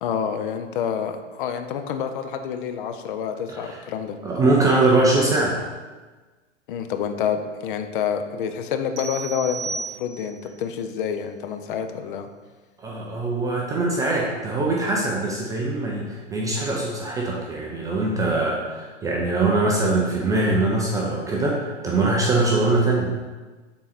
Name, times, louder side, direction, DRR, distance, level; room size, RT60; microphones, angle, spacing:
voice 1, 0.0-4.2 6.7-12.3, left 7 dB, 45° left, 7 dB, 0.6 m, -28 dB
voice 2, 4.2-5.6 12.8-23.1, right 2 dB, 10° right, -3 dB, 0.4 m, -22 dB
sound 1, 9.0-10.5, right 4 dB, 40° right, 1.1 m, -33 dB
6.9 x 3.9 x 4.2 m, 1.3 s
hypercardioid pair, 110°, 37 cm